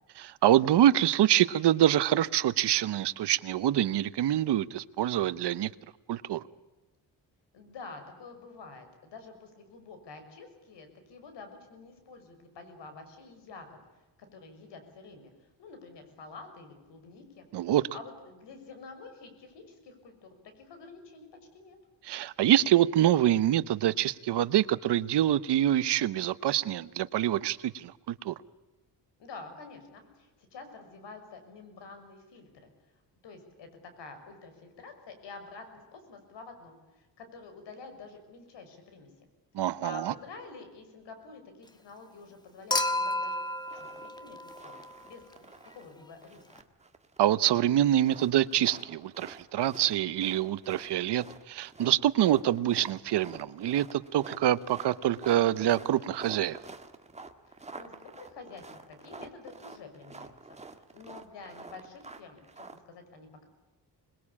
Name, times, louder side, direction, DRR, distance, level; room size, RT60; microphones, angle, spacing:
voice 1, 0.2-5.7 6.1-6.4 17.5-17.9 22.0-28.3 39.5-40.1 47.2-56.6, right 12 dB, 70° right, 16 dB, 1.0 m, -25 dB
voice 2, 7.5-13.7 14.3-15.3 15.6-21.8 29.2-32.7 33.2-33.7 34.0-39.1 39.6-43.4 43.7-46.4 57.5-63.5, left 4 dB, 80° left, 7 dB, 6.3 m, -48 dB
Human group actions / Chink clink / Liquid, 42.7-45.1 46.6-46.7, left 1 dB, 10° left, 1.5 m, -32 dB
sound 1, 43.7-44.2 44.5-45.9 46.2-47.4 47.9-62.8, right 3 dB, 15° right, 1.7 m, -48 dB
26.5 x 21.0 x 8.6 m, 1.1 s
cardioid pair, 135°, 42 cm